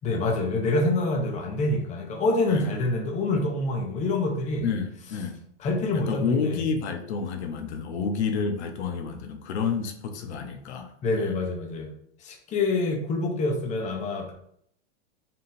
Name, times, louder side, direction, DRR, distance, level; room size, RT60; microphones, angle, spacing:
voice 1, 0.0-4.7 5.6-6.6 11.0-11.9 12.2-14.3, left 2 dB, 20° left, 2 dB, 0.7 m, -26 dB
voice 2, 4.6-5.4 5.9-10.9, left 5 dB, 70° left, 5 dB, 0.8 m, -29 dB
4.1 x 3.7 x 2.6 m, 0.68 s
supercardioid pair, 135°, 34 cm